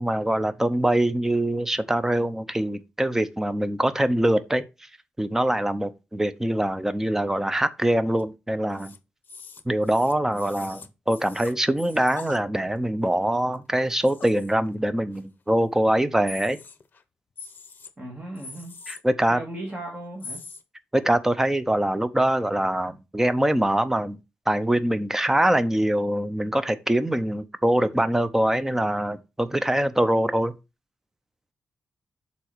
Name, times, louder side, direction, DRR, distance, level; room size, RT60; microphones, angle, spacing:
voice 1, 0.0-4.7 5.2-8.9 9.7-16.6 18.9-19.4 20.9-24.2 24.5-30.5, right 1 dB, 10° right, 0.6 m, -23 dB
sound 1, 8.1-8.2 8.7-9.0 9.2-12.4 13.1-13.2 13.5-13.6 13.9-14.8 15.1-15.2 15.6-15.9 16.3-17.0 17.4-17.9 18.4-19.0 20.2-20.6, left 4 dB, 45° left, 0.8 m, -42 dB
voice 2, 18.0-18.7 19.3-20.4, right 1 dB, 25° right, 1.9 m, -36 dB
6.8 x 4.1 x 4.5 m
wide cardioid pair, 110°, 4 cm